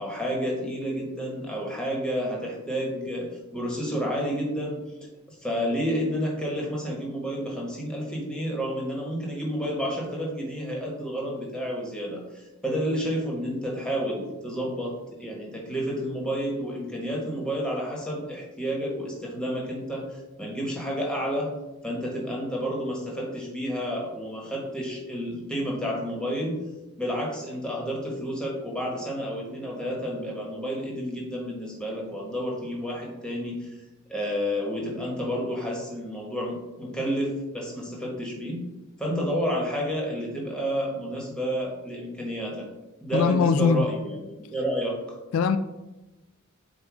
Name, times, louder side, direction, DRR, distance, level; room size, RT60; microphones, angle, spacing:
voice 1, 0.0-4.8 5.3-14.9 15.2-21.5 21.8-26.6 27.0-33.7 34.1-38.6 39.0-42.7 43.0-45.2, equal, 5° left, -2 dB, 1.5 m, -30 dB
voice 2, 43.1-43.8 45.3-45.6, left 6 dB, 70° left, 11 dB, 0.3 m, -21 dB
7.8 x 2.6 x 4.8 m, 1.0 s
head